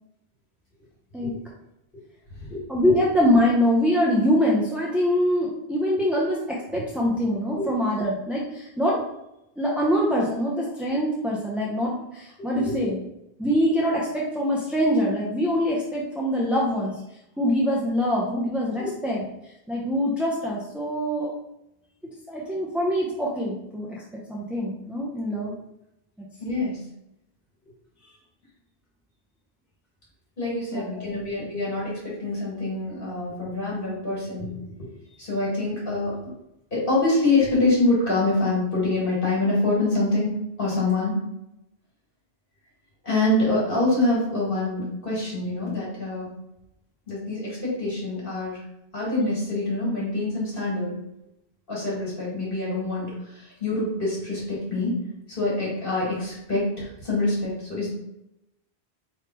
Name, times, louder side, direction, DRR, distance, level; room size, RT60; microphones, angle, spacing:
voice 1, 2.7-9.0 9.6-13.0 13.4-16.9 17.4-19.2 19.7-21.3 22.3-25.5 26.2-26.3 30.7-31.2, equal, ahead, -5 dB, 0.5 m, -24 dB
voice 2, 26.4-26.8 30.4-34.9 35.2-36.2 36.7-40.3 40.6-41.2 43.0-46.3 47.1-48.6 48.9-50.9 51.7-54.9 55.3-57.9, left 2 dB, 55° left, -6 dB, 2.0 m, -25 dB
3.5 x 3.2 x 4.4 m, 0.87 s
omnidirectional pair, 1.1 m